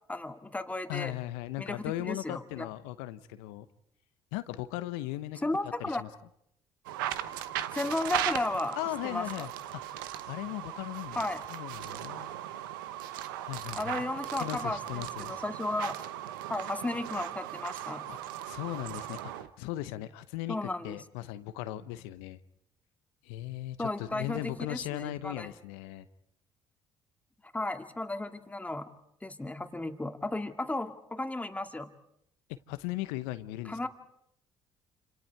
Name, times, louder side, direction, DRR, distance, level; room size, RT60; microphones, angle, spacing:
voice 1, 0.1-1.1 1.6-2.7 5.4-6.0 7.7-8.8 9.0-9.2 11.1-11.4 13.7-14.8 15.3-16.0 16.5-18.1 20.5-21.0 23.8-25.5 27.5-28.9 29.2-31.9 33.7-33.9, left 2 dB, 15° left, 7 dB, 2.1 m, -34 dB
voice 2, 0.9-3.7 4.3-5.4 5.8-6.1 8.8-12.3 13.4-14.1 14.4-15.3 18.1-22.4 23.2-26.1 32.7-33.8, left 15 dB, 80° left, 13 dB, 0.8 m, -38 dB
sound 1, 6.8-19.5, right 12 dB, 85° right, 0.9 m, -38 dB
28.0 x 26.5 x 4.6 m, 0.73 s
hypercardioid pair, 55°, 11 cm